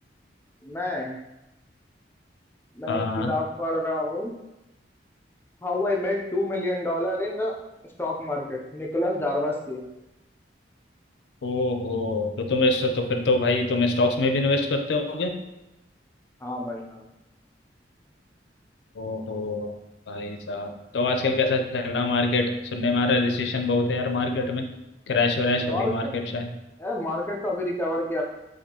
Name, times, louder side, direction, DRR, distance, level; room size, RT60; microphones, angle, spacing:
voice 1, 0.6-1.2 2.7-4.3 5.6-7.5 8.0-9.8 16.4-17.0 25.7-26.1 26.8-28.2, left 1 dB, 10° left, -1 dB, 0.4 m, -28 dB
voice 2, 2.9-3.3 11.4-15.3 19.0-19.8 20.1-24.7 25.1-26.5, left 2 dB, 75° left, 5 dB, 0.4 m, -25 dB
4.2 x 2.5 x 2.8 m, 0.94 s
head